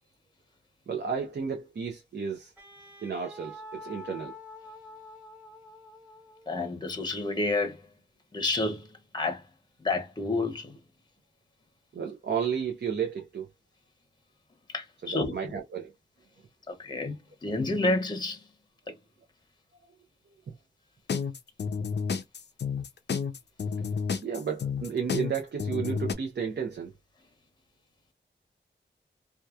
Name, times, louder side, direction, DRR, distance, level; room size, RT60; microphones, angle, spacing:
voice 1, 0.9-2.5 3.0-4.3 11.9-13.5 15.1-15.9 20.3-20.4 24.2-26.9, right 7 dB, 65° right, 0.6 m, -32 dB
Wind instrument woodwind instrument, 2.6-6.6, left 2 dB, 10° right, 1.2 m, -47 dB
voice 2, 6.5-7.8 8.3-9.4 9.8-10.8 14.7-15.5 16.7-18.4 18.9-19.0, left 2 dB, 25° left, 0.7 m, -30 dB
sound 1, 21.1-26.1, left 6 dB, 65° left, 0.4 m, -30 dB
2.8 x 2.2 x 2.3 m
wide cardioid pair, 80°, 19 cm